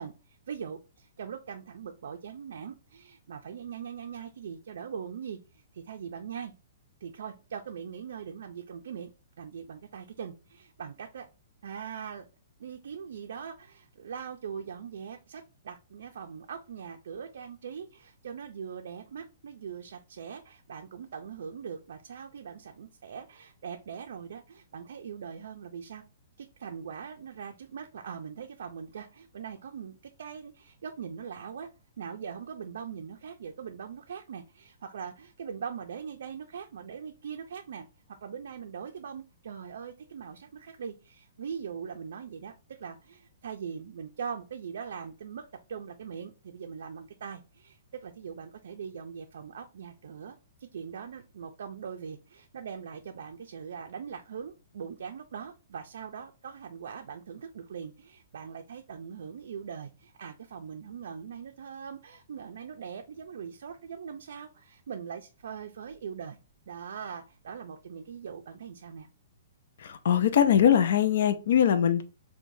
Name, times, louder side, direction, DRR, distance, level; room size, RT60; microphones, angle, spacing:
voice 1, 0.0-6.5 7.0-9.1 9.4-11.3 11.6-12.3 12.6-26.0 26.4-31.7 32.0-37.9 38.2-50.4 50.7-66.4 66.7-69.1, right 7 dB, 70° right, 0.4 m, -41 dB
voice 2, 69.8-72.0, left 9 dB, 60° left, 0.4 m, -22 dB
4.6 x 2.1 x 2.6 m
hypercardioid pair, 170°, 0 cm